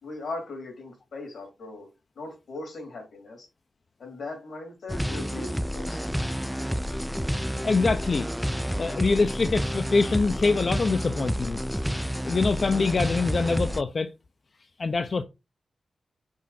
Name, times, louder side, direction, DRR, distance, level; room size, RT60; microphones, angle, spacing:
voice 1, 0.0-1.9 2.2-3.5 4.0-6.0, left 2 dB, 80° left, 3.5 m, -39 dB
sound 1, 4.9-13.8, equal, ahead, 0.3 m, -29 dB
voice 2, 7.6-8.3 8.8-11.6 12.2-14.1 14.8-15.2, left 4 dB, 45° left, 0.6 m, -24 dB
6.3 x 4.7 x 4.1 m
wide cardioid pair, 115°, 0 cm